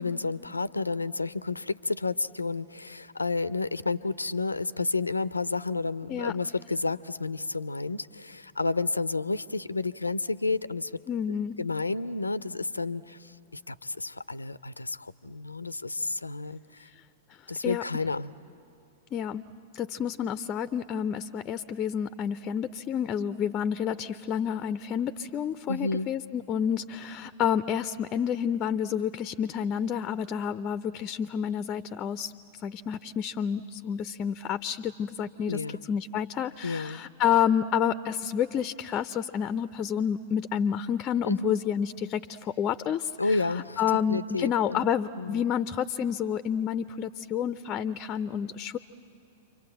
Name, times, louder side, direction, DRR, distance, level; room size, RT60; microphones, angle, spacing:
voice 1, 0.0-10.9 11.6-16.9 17.5-18.4 25.7-26.1 35.5-35.8 36.6-37.0 41.2-41.6 43.2-44.9 45.2-45.4, left 3 dB, 85° left, 17 dB, 0.5 m, -31 dB
voice 2, 11.1-11.5 17.6-17.8 19.1-19.4 19.7-32.3 32.6-35.6 35.9-43.4 43.8-48.8, left 8 dB, 30° left, 13 dB, 0.5 m, -29 dB
29.0 x 24.5 x 7.8 m, 3.0 s
figure-of-eight pair, 100°, 0 cm